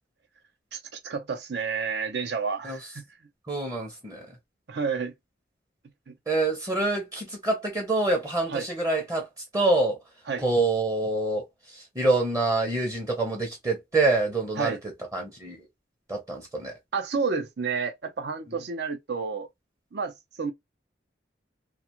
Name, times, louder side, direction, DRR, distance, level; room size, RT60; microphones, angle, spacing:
voice 1, 0.7-3.0 4.7-5.1 6.1-6.2 8.5-8.7 10.3-10.4 14.6-14.8 16.9-19.5 19.9-20.5, right 5 dB, 65° right, 0.6 m, -30 dB
voice 2, 3.5-4.3 6.3-9.3 9.5-10.0 10.4-14.8 15.1-15.6 16.1-16.7, right 2 dB, 20° right, 0.7 m, -26 dB
2.4 x 2.3 x 2.9 m
head